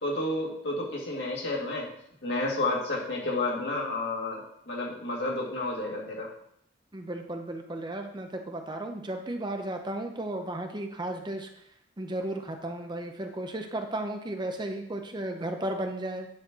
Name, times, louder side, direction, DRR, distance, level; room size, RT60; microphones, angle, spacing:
voice 1, 0.0-1.9 2.2-6.3, left 2 dB, 65° left, -3 dB, 2.4 m, -31 dB
voice 2, 6.9-11.5 12.0-16.3, right 1 dB, 25° right, 5 dB, 0.7 m, -34 dB
9.8 x 4.3 x 6.1 m, 0.74 s
head